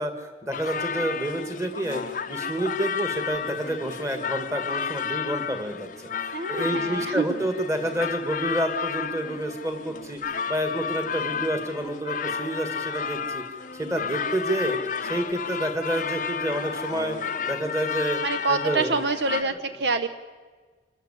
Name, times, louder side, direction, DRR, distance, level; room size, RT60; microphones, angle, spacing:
voice 1, 0.0-13.4 13.7-18.2 18.5-19.0 19.4-19.6, right 1 dB, 15° right, 7 dB, 1.9 m, -29 dB
sound 1, 0.5-19.4, left 6 dB, 45° left, 0.6 m, -32 dB
voice 2, 6.3-7.4 13.8-14.2 18.2-20.1, right 4 dB, 65° right, 10 dB, 0.8 m, -27 dB
25.5 x 13.5 x 8.2 m, 1.4 s
head